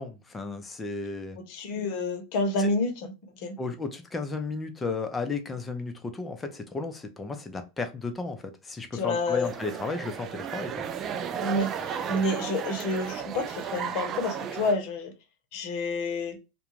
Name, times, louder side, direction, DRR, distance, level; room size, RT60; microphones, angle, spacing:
voice 1, 0.0-1.4 2.6-2.7 3.6-10.7, left 3 dB, 15° left, 0.6 m, -34 dB
voice 2, 1.4-3.6 8.9-9.5 11.4-15.1 15.5-16.4, left 2 dB, 60° left, 0.8 m, -29 dB
sound 1, 9.4-14.7, right 8 dB, 35° right, 0.3 m, -34 dB
2.3 x 2.2 x 3.0 m
hypercardioid pair, 110°, 0 cm